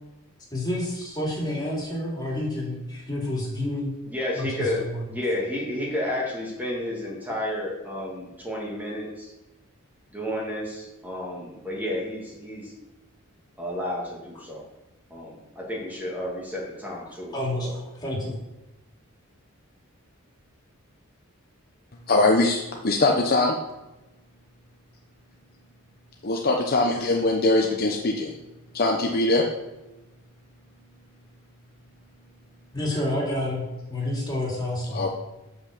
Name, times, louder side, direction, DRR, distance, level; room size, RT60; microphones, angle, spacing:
voice 1, 0.5-3.9 4.3-5.1 17.3-18.4 32.7-35.1, left 1 dB, 20° left, -4 dB, 2.9 m, -29 dB
voice 2, 4.1-4.8 5.1-9.3 10.1-12.7 13.6-14.6 15.1-17.7, left 1 dB, 10° right, -3 dB, 2.1 m, -31 dB
voice 3, 22.1-23.6 26.2-28.4 28.7-29.4 34.9-35.1, left 2 dB, 45° left, 1 dB, 0.8 m, -22 dB
7.6 x 5.9 x 6.6 m, 1.0 s
head